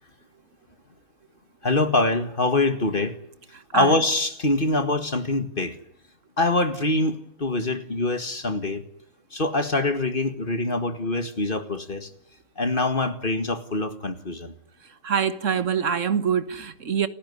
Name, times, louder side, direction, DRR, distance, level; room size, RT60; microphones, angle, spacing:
voice 1, 1.6-3.2 3.7-5.8 6.4-8.8 9.3-12.1 12.6-14.5, left 2 dB, 25° left, 1.8 m, -24 dB
voice 2, 3.5-4.0 14.8-17.1, right 7 dB, 45° right, 1.4 m, -25 dB
30.0 x 15.0 x 9.9 m
omnidirectional pair, 2.2 m